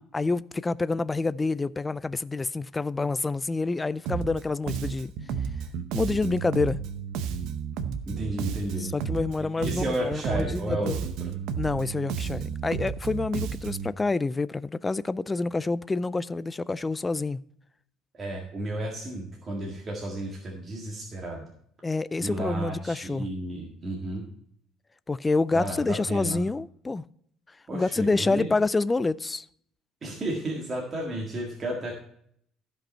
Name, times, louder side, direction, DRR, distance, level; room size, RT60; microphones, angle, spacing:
voice 1, 0.1-5.1 5.9-6.8 8.8-11.0 11.6-17.4 21.8-23.3 25.1-27.0 27.7-29.5, left 3 dB, 15° left, 0.3 m, -27 dB
Bass guitar, 4.1-4.4 4.7-9.4 9.6-13.9, right 7 dB, 75° right, 0.8 m, -32 dB
voice 2, 8.1-8.9 9.4-11.3 18.1-21.5 22.2-24.3 25.5-26.4 27.7-28.5 30.0-31.9, right 1 dB, 25° right, 1.8 m, -33 dB
14.5 x 5.3 x 4.3 m
cardioid pair, 145°, 0 cm